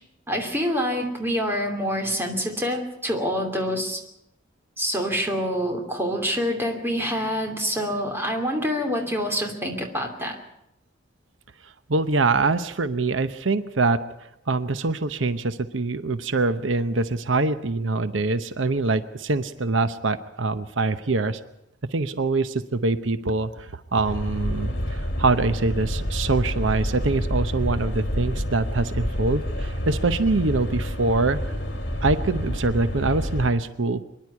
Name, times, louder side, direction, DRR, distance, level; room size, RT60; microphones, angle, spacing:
voice 1, 0.3-4.0 4.8-10.4, equal, 10° right, 3 dB, 2.8 m, -26 dB
voice 2, 11.9-14.0 14.5-21.4 21.9-31.4 32.0-34.0, right 3 dB, 85° right, 12 dB, 0.9 m, -24 dB
sound 1, 24.0-33.5, equal, 60° left, 2.7 m, -28 dB
24.5 x 11.0 x 9.7 m, 0.83 s
head